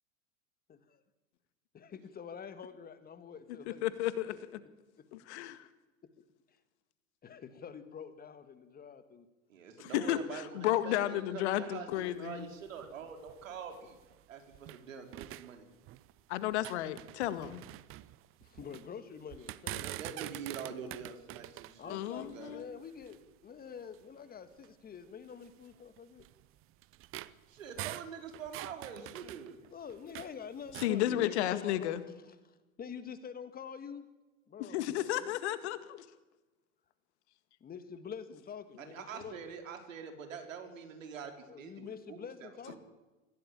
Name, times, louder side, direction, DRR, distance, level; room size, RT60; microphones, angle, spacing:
voice 1, 0.7-1.0 1.7-3.9 4.3-4.4 5.0-5.1 5.3-5.5 6.0-6.1 7.2-9.3 18.4-20.3 21.8-26.3 29.7-32.0 32.3-34.1 34.5-35.4 37.6-39.4 41.5-42.8, left 7 dB, 20° left, 11 dB, 1.9 m, -47 dB
voice 2, 3.8-4.3 5.1-5.6 9.8-12.4 16.3-17.6 21.9-22.8 30.8-32.0 34.6-36.1, left 13 dB, 55° left, 13 dB, 2.0 m, -33 dB
voice 3, 9.5-14.0 14.3-15.6 19.8-22.6 27.5-29.6 38.8-42.8, right 6 dB, 70° right, 5 dB, 5.1 m, -45 dB
sound 1, 11.9-14.8 15.1-16.2 16.5-18.9 19.3-23.3 23.9-24.0 24.5-24.7 25.4-30.4 30.6-31.0, right 17 dB, 30° right, 0.9 m, -46 dB
25.5 x 16.5 x 9.0 m, 1.1 s
figure-of-eight pair, 95°, 41 cm